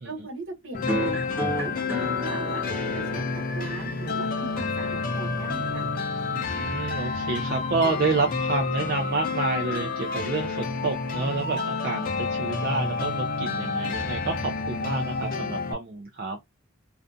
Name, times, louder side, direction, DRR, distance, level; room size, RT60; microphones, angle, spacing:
voice 1, 0.0-1.2 1.6-2.6 2.9-5.9, right 3 dB, 70° right, 0.9 m, -39 dB
sound 1, 0.7-15.7, left 4 dB, 45° left, 0.5 m, -29 dB
sound 2, 0.9-5.9, equal, 10° right, 0.7 m, -33 dB
voice 2, 6.3-16.4, right 3 dB, 50° right, 0.4 m, -29 dB
2.4 x 2.3 x 2.5 m
head